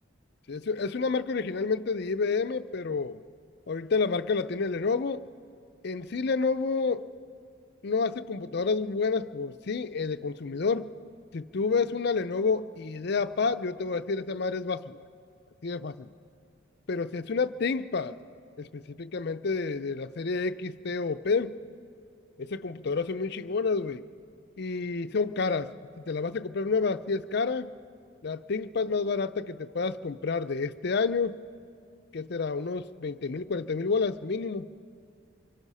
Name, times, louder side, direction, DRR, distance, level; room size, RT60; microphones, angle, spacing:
voice 1, 0.5-3.2 3.7-5.2 5.8-7.1 7.8-10.9 11.3-15.0 15.6-16.1 16.9-18.2 18.6-21.6 22.4-24.0 24.6-27.7 28.2-31.4 32.1-34.7, left 4 dB, 55° left, 10 dB, 0.5 m, -29 dB
25.0 x 23.5 x 5.6 m, 2.3 s
head